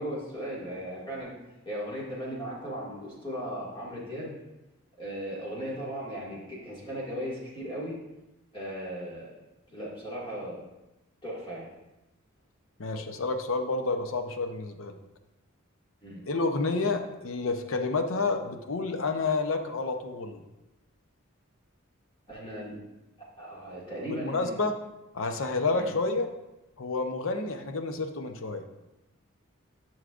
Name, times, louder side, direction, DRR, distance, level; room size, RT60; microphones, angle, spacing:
voice 1, 0.0-1.3 1.7-4.3 5.0-8.0 8.5-9.4 9.7-10.6 11.2-11.7 16.0-16.2 22.3-22.8 23.4-24.6 25.7-25.9, equal, 25° left, -6 dB, 2.1 m, -37 dB
voice 2, 12.8-15.0 16.3-20.4 24.1-24.7 25.1-26.3 26.8-28.6, left 3 dB, 65° left, 6 dB, 0.7 m, -29 dB
11.5 x 6.3 x 2.5 m, 0.98 s
head